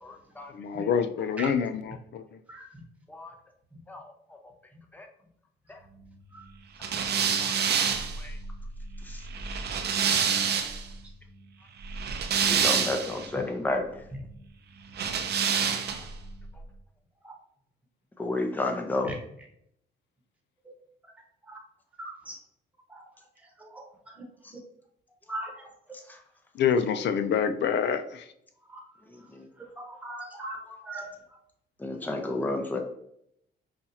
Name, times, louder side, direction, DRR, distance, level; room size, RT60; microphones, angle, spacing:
voice 1, 0.0-0.5 3.1-3.3 3.9-4.1 4.9-5.1 5.7-5.8 7.1-7.5 8.2-8.4 9.0-9.2 12.5-14.0 18.2-19.1 26.1-26.2 29.1-29.5 30.7-30.8 31.8-32.8, left 2 dB, 10° left, 3 dB, 0.7 m, -32 dB
voice 2, 0.5-2.2 26.6-28.2, left 7 dB, 60° left, 10 dB, 0.5 m, -26 dB
sound 1, 6.8-10.9 11.8-13.3 14.9-16.2, right 7 dB, 55° right, 0.6 m, -27 dB
voice 3, 22.0-22.4 22.9-23.0 23.6-24.2 25.3-25.5 28.7-28.8 29.6-31.1, right 1 dB, 5° right, 0 dB, 1.2 m, -39 dB
5.4 x 2.4 x 2.8 m, 0.71 s
cardioid pair, 90°, 20 cm